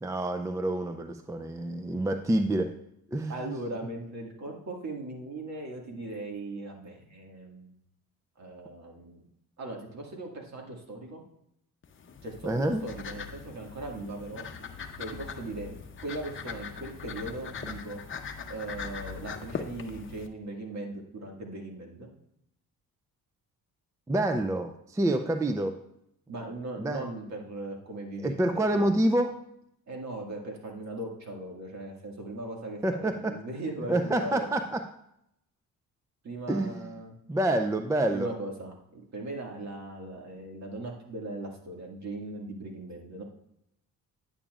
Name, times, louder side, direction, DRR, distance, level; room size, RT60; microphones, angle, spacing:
voice 1, 0.0-2.7 3.1-3.5 12.4-12.8 24.1-25.8 26.8-27.0 28.2-29.4 32.8-33.4 33.9-34.8 36.5-36.9 37.3-38.3, right 1 dB, 10° right, 7 dB, 0.4 m, -27 dB
voice 2, 3.3-7.7 8.4-9.2 9.6-11.2 12.2-14.4 15.0-15.7 16.0-18.0 18.5-22.1 26.3-28.9 29.9-34.5 36.2-37.2 38.1-43.2, right 2 dB, 50° right, 1 dB, 2.0 m, -39 dB
sound 1, 11.8-20.3, left 6 dB, 35° left, 0.8 m, -41 dB
9.9 x 8.7 x 2.4 m, 0.77 s
cardioid pair, 110°, 34 cm